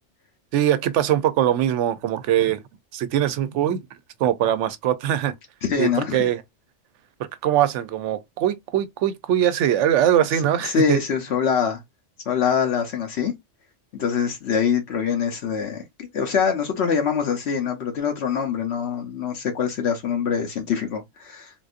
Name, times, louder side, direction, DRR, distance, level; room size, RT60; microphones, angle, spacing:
voice 1, 0.5-2.6 2.9-3.8 4.2-5.3 5.8-6.4 7.2-11.0, right 11 dB, 85° right, 0.9 m, -22 dB
voice 2, 5.6-6.2 10.6-11.8 12.3-13.3 13.9-15.8 16.1-21.7, left 6 dB, 70° left, 1.0 m, -24 dB
3.6 x 2.6 x 2.4 m
omnidirectional pair, 1.2 m